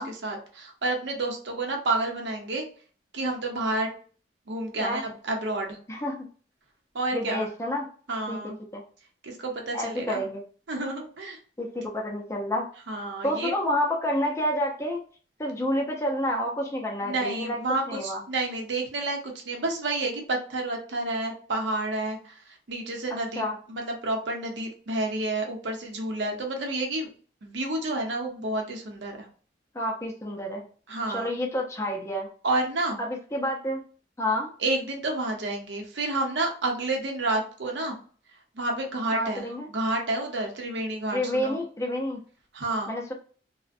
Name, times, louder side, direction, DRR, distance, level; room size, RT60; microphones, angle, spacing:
voice 1, 0.0-2.7 3.1-3.9 4.5-5.8 6.9-7.5 8.1-8.6 9.2-10.2 10.7-11.4 12.9-13.5 17.0-27.1 27.4-29.3 30.9-31.3 32.4-33.0 34.6-38.0 38.5-39.5 39.7-41.6 42.5-42.9, right 2 dB, 80° right, 2 dB, 0.7 m, -30 dB
voice 2, 7.1-7.9 8.3-8.4 8.7-8.8 9.7-10.4 11.6-12.7 13.2-15.0 15.4-17.6 17.9-18.2 23.4-23.6 29.7-30.6 31.1-32.3 33.0-33.8 34.2-34.5 39.1-39.7 41.1-42.2 42.9-43.1, left 1 dB, 15° left, 1 dB, 0.4 m, -29 dB
2.5 x 2.1 x 2.4 m, 0.42 s
head